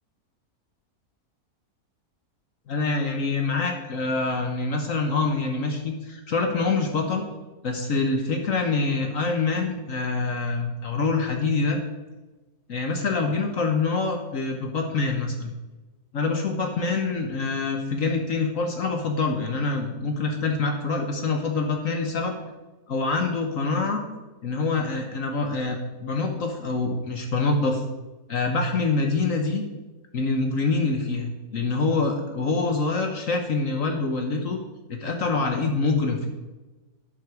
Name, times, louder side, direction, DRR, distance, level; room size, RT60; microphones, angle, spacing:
voice 1, 2.7-7.3 7.6-11.8 12.7-15.5 16.1-22.4 22.9-24.0 24.4-27.8 28.3-29.6 30.1-34.6 34.9-36.3, left 3 dB, 60° left, 3 dB, 1.4 m, -25 dB
11.5 x 7.5 x 4.9 m, 1.2 s
omnidirectional pair, 1.6 m